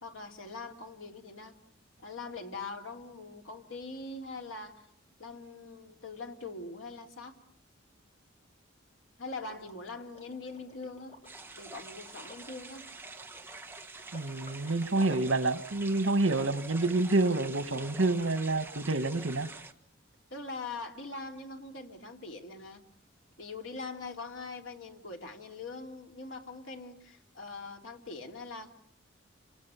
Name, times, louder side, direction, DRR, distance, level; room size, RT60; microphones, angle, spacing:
voice 1, 0.0-1.5 2.0-4.8 5.2-7.3 9.2-11.2 11.6-12.9 20.3-22.8 23.4-28.7, left 3 dB, 90° left, 2.9 m, -42 dB
Liquid, 9.4-15.5, left 1 dB, 35° left, 3.6 m, -54 dB
sound 1, 11.2-19.7, right 3 dB, 10° right, 1.3 m, -46 dB
voice 2, 14.1-19.5, right 2 dB, 85° right, 1.4 m, -28 dB
28.5 x 25.0 x 7.0 m
head